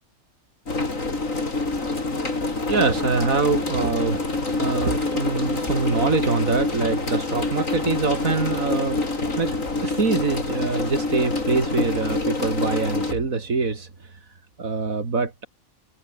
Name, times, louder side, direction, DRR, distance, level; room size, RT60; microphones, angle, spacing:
sound 1, 0.7-13.1, left 3 dB, 65° left, 4.5 m, -26 dB
voice 1, 2.7-9.1 9.4-13.9 14.6-15.5, right 4 dB, 70° right, 3.5 m, -24 dB
omnidirectional pair, 1.5 m